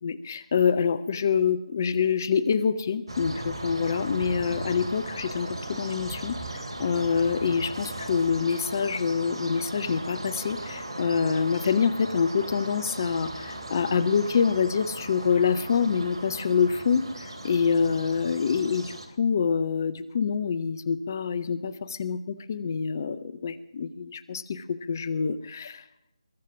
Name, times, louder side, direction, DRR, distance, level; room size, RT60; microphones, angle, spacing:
voice 1, 0.0-25.9, left 6 dB, 35° left, 16 dB, 0.7 m, -26 dB
sound 1, 3.1-19.1, right 1 dB, 55° right, 3.1 m, -37 dB
22.0 x 7.5 x 7.3 m, 0.83 s
figure-of-eight pair, 155°, 3 cm